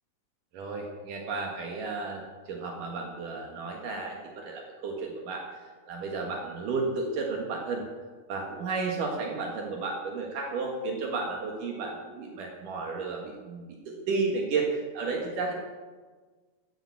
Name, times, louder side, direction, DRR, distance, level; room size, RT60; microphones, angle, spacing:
voice 1, 0.5-5.6 5.9-7.8 8.3-15.5, right 4 dB, 70° right, 1 dB, 3.1 m, -33 dB
13.0 x 9.4 x 8.4 m, 1.4 s
omnidirectional pair, 3.9 m